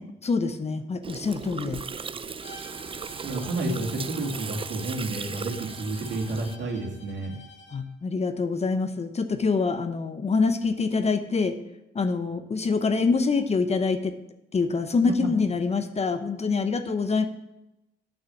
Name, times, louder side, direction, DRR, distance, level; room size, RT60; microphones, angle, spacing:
voice 1, 0.0-1.8 7.7-11.6 11.9-14.2 14.5-17.3, left 4 dB, 30° left, 9 dB, 0.8 m, -25 dB
Gurgling, 1.0-6.6, right 5 dB, 25° right, 0.5 m, -37 dB
Bowed string instrument, 2.4-7.9, left 1 dB, 60° left, 2.5 m, -49 dB
voice 2, 3.2-7.4 15.0-15.1, right 2 dB, 65° right, -1 dB, 2.6 m, -30 dB
9.1 x 6.5 x 7.1 m, 0.90 s
cardioid pair, 90°, 20 cm